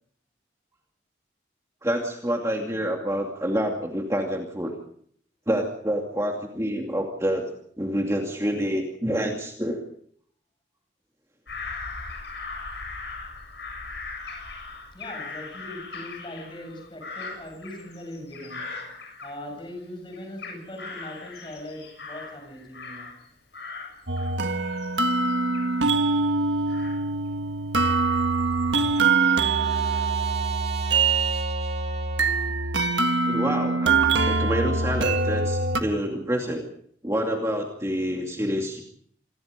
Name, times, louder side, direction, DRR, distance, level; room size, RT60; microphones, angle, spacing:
voice 1, 1.8-4.7 5.5-7.5 7.8-9.8 33.3-34.0 34.2-36.7 37.0-38.8, equal, 15° right, 1 dB, 2.5 m, -27 dB
Bird vocalization bird call bird song / Crow, 11.5-19.8 20.1-23.3 23.5-29.6 30.1-30.6, left 4 dB, 65° left, 7.9 m, -40 dB
voice 2, 14.9-23.1, left 1 dB, 25° left, 4 dB, 7.3 m, -40 dB
sound 1, 24.1-35.8, right 4 dB, 75° right, 1.6 m, -24 dB
Trumpet, 27.8-32.5, right 5 dB, 35° right, 2.5 m, -41 dB
27.0 x 21.5 x 5.2 m, 0.62 s
head